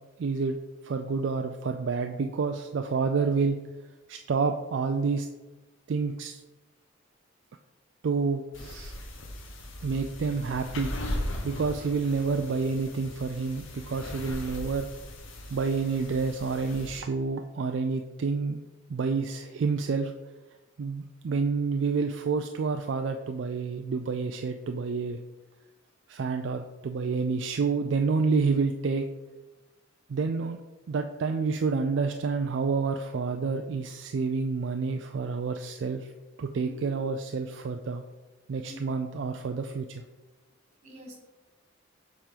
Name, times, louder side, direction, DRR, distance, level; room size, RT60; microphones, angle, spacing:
voice 1, 0.2-0.6 0.8-3.6 4.1-5.3 5.9-6.4 8.0-9.0 9.8-11.0 11.4-14.9 15.5-18.6 18.9-20.1 20.8-25.2 26.1-29.1 30.1-30.6 30.9-36.1 36.4-38.0 38.5-40.0, right 4 dB, 60° right, 5 dB, 0.4 m, -29 dB
sound 1, 8.5-17.0, left 1 dB, 75° left, 1.0 m, -38 dB
voice 2, 36.6-36.9 38.6-38.8 40.8-41.1, left 2 dB, 30° right, -2 dB, 2.2 m, -45 dB
7.3 x 3.7 x 5.0 m, 1.2 s
head